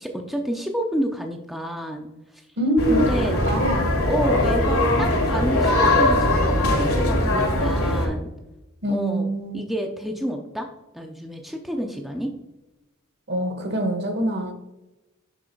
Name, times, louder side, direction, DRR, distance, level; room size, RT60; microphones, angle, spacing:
voice 1, 0.0-2.1 2.3-2.5 2.9-3.4 4.0-8.3 8.9-12.3, equal, ahead, 2 dB, 0.5 m, -29 dB
voice 2, 2.6-3.0 3.5-3.9 8.8-9.6 13.3-14.5, right 1 dB, 50° right, 5 dB, 1.1 m, -24 dB
sound 1, 2.8-8.1, left 1 dB, 80° left, 1.8 m, -20 dB
6.3 x 4.7 x 4.5 m, 0.98 s
head